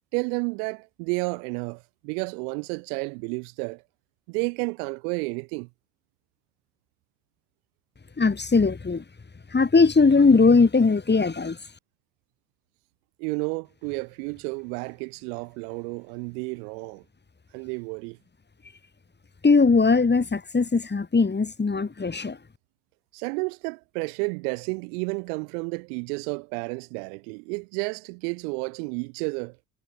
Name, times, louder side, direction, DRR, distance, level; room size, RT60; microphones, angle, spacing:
voice 1, 0.1-3.8 4.3-5.7 13.2-17.0 17.5-18.2 23.1-29.6, right 35 dB, 70° right, 5.0 m, -31 dB
voice 2, 8.2-9.0 9.5-11.6 19.4-22.4, left 4 dB, 20° left, 7.3 m, -19 dB
hypercardioid pair, 70°, 47 cm